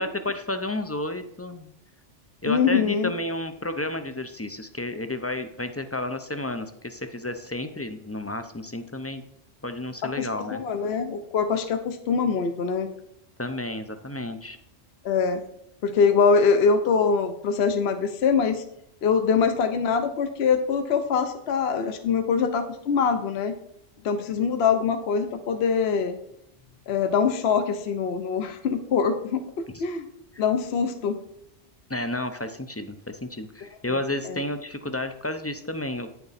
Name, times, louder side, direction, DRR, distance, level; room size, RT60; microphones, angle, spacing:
voice 1, 0.0-1.7 2.4-9.2 9.6-10.6 13.4-14.6 29.7-29.8 31.9-36.1, left 1 dB, 25° left, 9 dB, 0.3 m, -31 dB
voice 2, 2.4-3.1 10.0-12.9 15.0-15.4 15.8-18.6 19.0-23.5 24.0-26.2 26.9-30.1 30.4-31.2 34.3-34.4, left 5 dB, 60° left, 7 dB, 0.9 m, -23 dB
9.7 x 6.8 x 4.1 m, 0.78 s
omnidirectional pair, 1.2 m